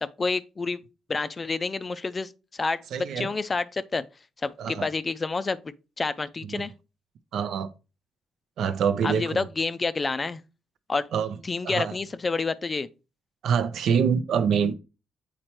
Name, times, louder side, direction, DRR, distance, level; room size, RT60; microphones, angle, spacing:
voice 1, 0.0-0.8 1.1-2.8 3.2-4.0 4.4-6.7 9.0-10.4 10.9-11.1 11.4-12.9, left 4 dB, 30° left, 0.4 m, -29 dB
voice 2, 2.9-3.3 4.6-4.9 6.5-6.6 7.3-7.7 8.6-9.5 11.1-11.4 11.6-12.0 13.4-14.7, right 7 dB, 70° right, 0.5 m, -25 dB
7.6 x 4.3 x 3.0 m
cardioid pair, 90°, 0 cm